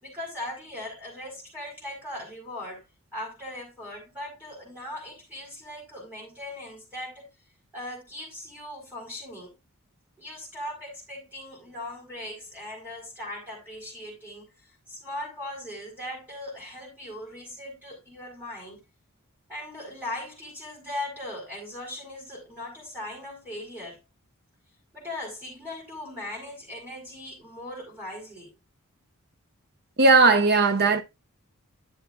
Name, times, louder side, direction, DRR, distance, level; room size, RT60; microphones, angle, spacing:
voice 1, 0.0-2.8 3.1-7.3 7.7-9.5 10.2-14.5 14.9-18.8 19.5-24.0 24.9-28.5, left 1 dB, 10° right, 5.1 m, -39 dB
voice 2, 30.0-31.0, right 3 dB, 50° right, 0.8 m, -17 dB
10.5 x 7.0 x 2.6 m
head